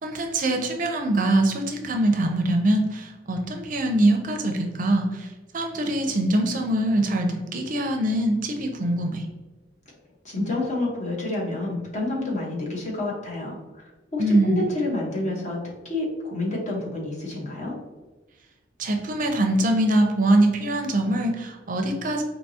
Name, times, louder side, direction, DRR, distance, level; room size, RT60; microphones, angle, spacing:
voice 1, 0.0-5.3 5.5-9.2 14.2-14.6 18.8-22.2, right 1 dB, 45° right, 3 dB, 0.5 m, -23 dB
voice 2, 10.2-13.8 14.1-15.6 15.8-17.7, left 2 dB, 40° left, -2 dB, 1.1 m, -29 dB
4.6 x 2.8 x 2.7 m, 1.2 s
head